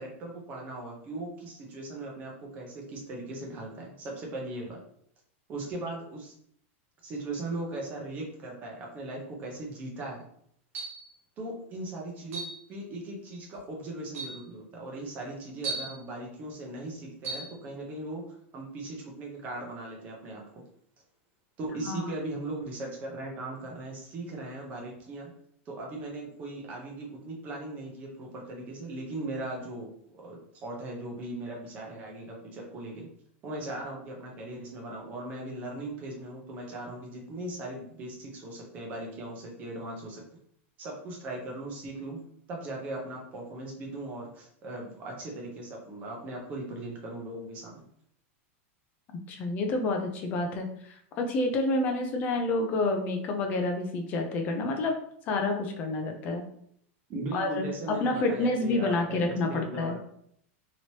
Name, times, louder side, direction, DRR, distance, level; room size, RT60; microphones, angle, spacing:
voice 1, 0.0-4.8 5.5-6.3 7.0-10.3 11.4-12.4 12.7-20.6 21.6-25.3 25.7-33.1 33.4-40.2 40.8-42.2 42.5-47.8 57.1-60.0, right 2 dB, 20° right, -1 dB, 0.7 m, -38 dB
sound 1, 10.7-11.1 12.3-12.6 13.5-13.6 14.1-14.4 15.6-16.0 17.2-17.5, right 3 dB, 80° right, 1.0 m, -36 dB
voice 2, 49.3-54.9 55.3-56.4 57.3-60.0, left 2 dB, 25° left, 4 dB, 0.4 m, -29 dB
3.0 x 2.9 x 2.8 m, 0.68 s
supercardioid pair, 175°, 7 cm